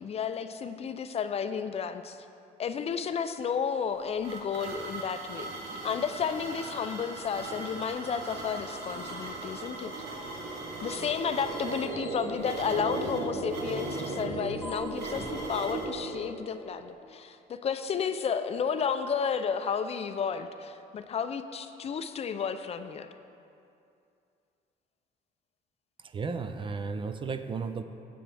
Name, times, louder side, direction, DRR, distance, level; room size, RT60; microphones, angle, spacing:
voice 1, 0.0-2.2 2.6-5.5 5.8-9.9 10.8-23.1, left 6 dB, 35° left, 9 dB, 0.4 m, -32 dB
sound 1, 3.8-15.9, right 2 dB, 75° right, 1.3 m, -41 dB
sound 2, 8.3-17.0, right 2 dB, 55° right, 1.0 m, -37 dB
sound 3, 8.4-10.4 10.8-15.4, equal, 5° right, 2.5 m, -49 dB
voice 2, 26.0-27.8, right 4 dB, 30° right, 9 dB, 0.4 m, -34 dB
13.0 x 7.7 x 3.4 m, 2.6 s
cardioid pair, 110°, 17 cm